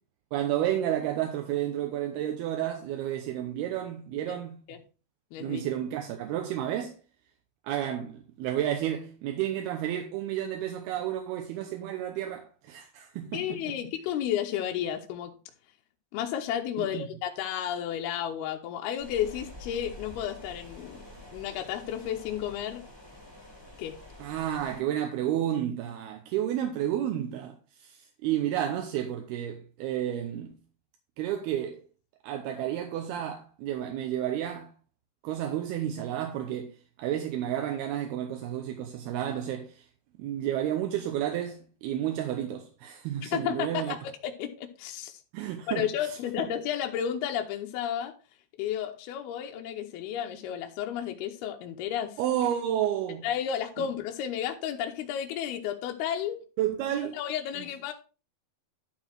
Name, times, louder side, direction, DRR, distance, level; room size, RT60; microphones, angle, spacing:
voice 1, 0.3-4.6 5.4-7.0 7.6-13.8 16.8-17.0 24.2-30.5 31.2-31.8 32.2-34.7 35.2-39.9 40.2-44.0 45.3-46.5 52.2-53.3 53.8-53.9 56.6-57.2 57.6-57.7, right 11 dB, 80° right, 2.6 m, -31 dB
voice 2, 5.3-5.6 13.3-15.3 16.1-21.0 21.3-22.8 23.8-24.0 43.2-45.2 45.8-48.1 48.6-52.2 53.2-56.4 56.9-57.9, left 10 dB, 75° left, 2.6 m, -32 dB
sound 1, 19.0-24.8, left 2 dB, 10° right, 1.7 m, -47 dB
11.5 x 4.7 x 4.5 m
omnidirectional pair, 4.9 m